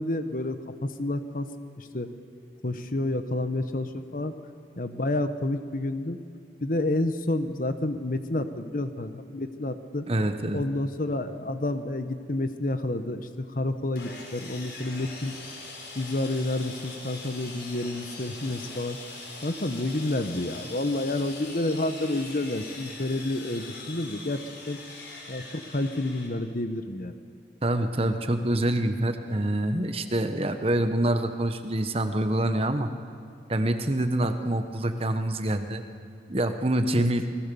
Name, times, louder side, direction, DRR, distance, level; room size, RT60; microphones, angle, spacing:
voice 1, 0.0-1.5 1.8-2.1 2.6-4.3 4.8-6.2 6.6-10.1 10.5-15.3 15.9-19.0 19.4-24.8 25.3-27.1 37.0-37.1, left 2 dB, 50° left, 10 dB, 1.1 m, -29 dB
voice 2, 10.1-10.6 27.6-32.9 33.5-35.8 36.3-37.3, right 1 dB, 30° right, 8 dB, 1.2 m, -26 dB
Sawing, 14.0-26.3, left 3 dB, 65° left, 4.8 m, -42 dB
29.0 x 20.5 x 7.0 m, 2.4 s
head